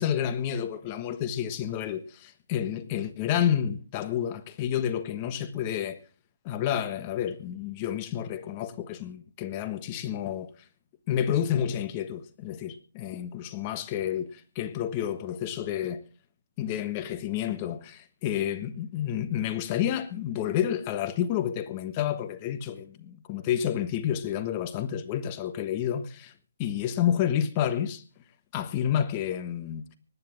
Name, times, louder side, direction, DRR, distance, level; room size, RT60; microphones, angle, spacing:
voice 1, 0.0-6.0 6.4-10.5 11.1-16.0 16.6-26.3 26.6-28.0 28.5-29.8, left 10 dB, 25° left, 1.3 m, -30 dB
25.5 x 9.9 x 3.6 m
hypercardioid pair, 160°, 0 cm